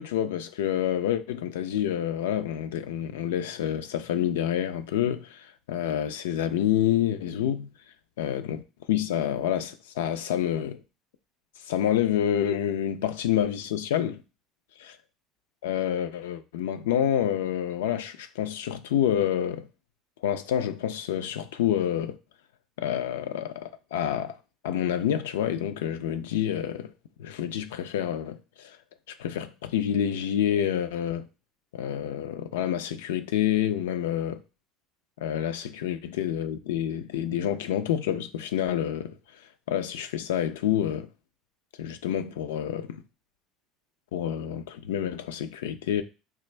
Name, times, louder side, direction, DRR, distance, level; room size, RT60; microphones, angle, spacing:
voice 1, 0.0-7.7 8.2-8.6 8.9-10.8 11.7-14.2 14.8-14.9 15.6-19.7 20.2-22.2 22.8-24.4 24.6-26.9 27.2-28.8 29.1-31.3 31.7-34.4 35.2-39.2 39.7-41.1 41.8-43.0 44.1-46.0, left 10 dB, 85° left, 0.3 m, -28 dB
3.4 x 2.4 x 3.2 m
hypercardioid pair, 85°, 0 cm